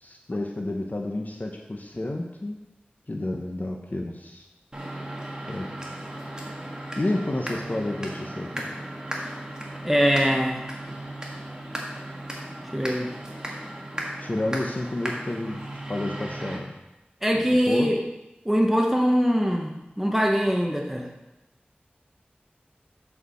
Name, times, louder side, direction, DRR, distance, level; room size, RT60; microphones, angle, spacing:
voice 1, 0.0-2.6 3.1-4.4 5.5-5.7 7.0-8.7 14.2-15.6 15.9-16.8 17.3-17.9, left 1 dB, 50° left, 2 dB, 1.1 m, -30 dB
sound 1, 4.7-16.6, right 1 dB, 20° right, 1.8 m, -36 dB
voice 2, 9.8-10.6 12.7-13.1 17.2-18.0 18.4-21.1, equal, 5° right, 0 dB, 1.3 m, -22 dB
8.2 x 4.9 x 6.5 m, 0.96 s
wide cardioid pair, 45°, 4 cm